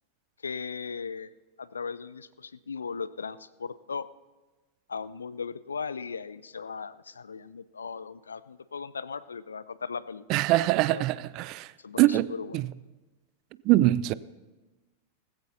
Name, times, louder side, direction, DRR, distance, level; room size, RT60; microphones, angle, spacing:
voice 1, 0.4-1.3 1.6-4.1 4.9-10.3 10.9-11.0 11.8-12.6, left 5 dB, 75° left, 0.4 m, -37 dB
voice 2, 10.3-11.7 12.0-12.3 12.5-12.6 13.7-14.1, right 16 dB, 40° right, 0.3 m, -23 dB
18.5 x 15.5 x 2.8 m
figure-of-eight pair, 90°, 0 cm